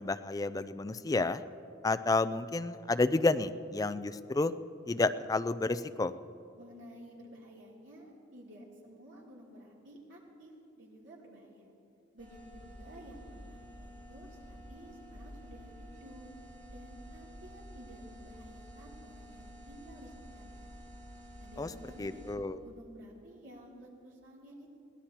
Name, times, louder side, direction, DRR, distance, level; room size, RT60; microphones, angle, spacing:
voice 1, 0.0-1.4 1.8-4.5 4.9-6.1 21.6-21.7 22.0-22.6, left 3 dB, 20° left, 13 dB, 0.3 m, -30 dB
voice 2, 6.6-11.7 12.1-16.3 16.7-20.7 21.4-22.2 22.6-24.8, equal, 80° right, -4 dB, 3.1 m, -53 dB
UH Band room buzz, 12.2-22.4, equal, 40° right, 2.3 m, -50 dB
22.5 x 16.5 x 2.9 m, 2.5 s
head